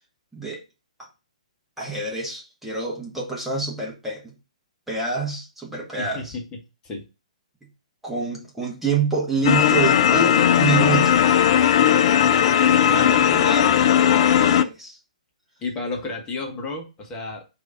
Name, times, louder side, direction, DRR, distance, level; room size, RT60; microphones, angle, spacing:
voice 1, 1.8-4.3 4.9-6.4 8.0-11.5 12.9-13.8 14.4-15.0, right 4 dB, 5° right, -3 dB, 1.1 m, -27 dB
voice 2, 6.0-7.0 12.7-13.2 15.6-17.4, left 2 dB, 20° left, 0 dB, 1.2 m, -32 dB
sound 1, 9.4-14.6, left 9 dB, 50° left, 0.3 m, -17 dB
5.0 x 2.7 x 3.6 m, 0.29 s
figure-of-eight pair, 125°, 4 cm